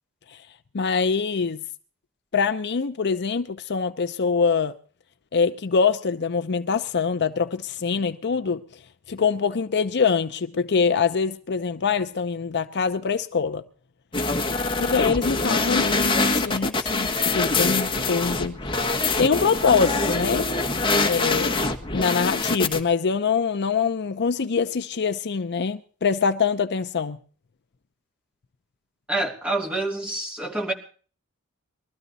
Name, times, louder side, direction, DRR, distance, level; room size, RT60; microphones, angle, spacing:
voice 1, 0.7-1.6 2.3-4.7 5.3-8.6 9.1-13.6 14.8-18.6 19.2-20.5 21.0-21.5 21.9-27.2, left 5 dB, 50° left, 0.6 m, -24 dB
sound 1, 14.1-22.8, left 3 dB, 25° left, 1.5 m, -24 dB
voice 2, 29.1-30.7, right 2 dB, 5° right, 2.8 m, -27 dB
21.0 x 13.5 x 4.0 m
head